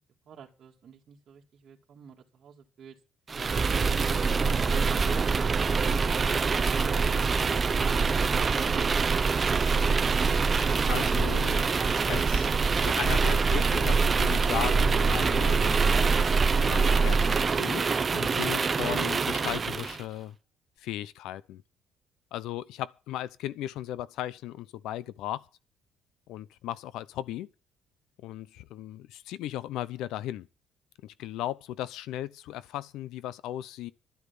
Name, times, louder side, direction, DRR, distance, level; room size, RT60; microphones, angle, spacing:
voice 1, 0.3-3.0, right 6 dB, 50° right, 2.2 m, -49 dB
sound 1, 3.3-20.0, right 4 dB, 25° right, 0.8 m, -25 dB
voice 2, 10.8-16.2 16.6-20.4 20.8-21.6 22.3-25.4 26.3-27.5 28.2-30.5 31.0-33.9, left 13 dB, 85° left, 0.7 m, -36 dB
12.0 x 8.3 x 7.0 m
cardioid pair, 135°, 0 cm